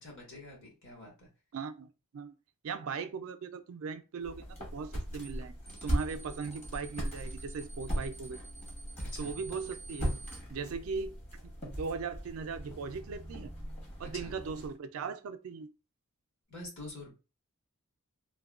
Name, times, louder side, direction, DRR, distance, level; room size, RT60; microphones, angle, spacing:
voice 1, 0.0-1.3 9.1-9.3 14.1-14.3 16.5-17.1, left 2 dB, 55° left, 1.5 m, -46 dB
voice 2, 1.5-2.3 2.6-5.6 5.8-8.4 9.2-10.2 10.5-11.2 11.4-13.5 14.0-15.7, right 5 dB, 70° right, 0.4 m, -39 dB
sound 1, 4.2-14.7, equal, 30° left, 1.0 m, -39 dB
sound 2, 5.2-5.4 5.7-10.4, right 4 dB, 10° left, 0.6 m, -50 dB
3.4 x 2.2 x 2.4 m
head